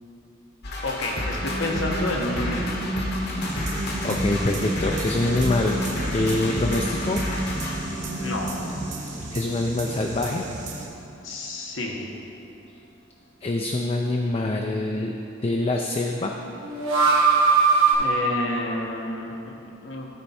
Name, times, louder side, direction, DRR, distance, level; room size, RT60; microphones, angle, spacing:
sound 1, 0.6-10.1, left 1 dB, 55° left, 1.1 m, -32 dB
voice 1, 0.8-2.8 8.2-8.5 11.2-12.0 18.0-20.1, left 1 dB, 80° left, 0 dB, 1.2 m, -30 dB
sound 2, 1.4-9.2 9.5-9.6 16.4-17.9, right 4 dB, 90° right, 1.6 m, -26 dB
sound 3, 3.4-10.9, right 2 dB, 40° right, 1.0 m, -36 dB
voice 2, 4.0-7.2 9.3-10.5 13.4-15.2 15.4-16.3, left 2 dB, 30° left, 2 dB, 0.4 m, -25 dB
13.0 x 4.4 x 4.2 m, 2.7 s
head